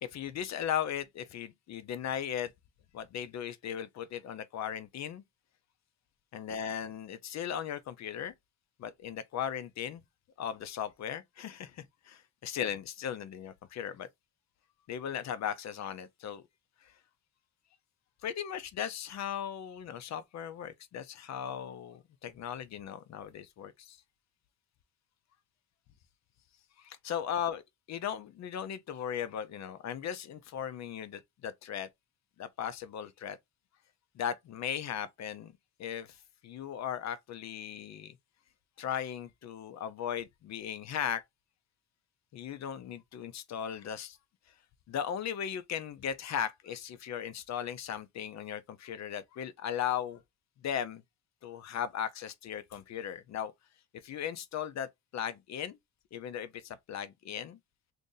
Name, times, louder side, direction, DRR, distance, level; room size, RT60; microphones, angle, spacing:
voice 1, 0.0-2.5 2.9-5.2 6.3-8.3 8.8-10.0 10.4-14.1 14.9-16.4 16.8-17.0 18.2-24.0 26.8-27.6 27.9-31.9 32.4-33.4 34.1-35.5 35.8-38.2 38.8-41.2 42.3-44.2 44.9-50.2 50.6-51.0 51.4-53.5 54.0-55.8 56.1-57.6, left 9 dB, 45° left, 0.5 m, -37 dB
2.6 x 2.6 x 3.8 m
cardioid pair, 110°, 39 cm